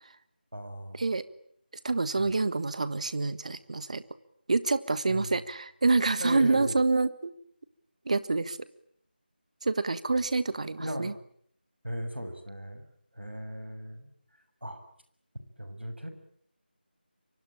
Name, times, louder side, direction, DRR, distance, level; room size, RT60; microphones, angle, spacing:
voice 1, 0.5-1.0 2.2-2.3 5.1-5.4 6.2-6.8 10.8-11.1 11.8-12.9 13.1-14.1 14.6-14.8 15.6-16.1, equal, 90° right, 8 dB, 6.5 m, -37 dB
voice 2, 1.8-4.0 4.5-7.3 8.0-8.6 9.6-11.1, right 3 dB, 40° right, 15 dB, 1.4 m, -27 dB
27.0 x 24.0 x 8.8 m, 0.67 s
figure-of-eight pair, 165°, 6 cm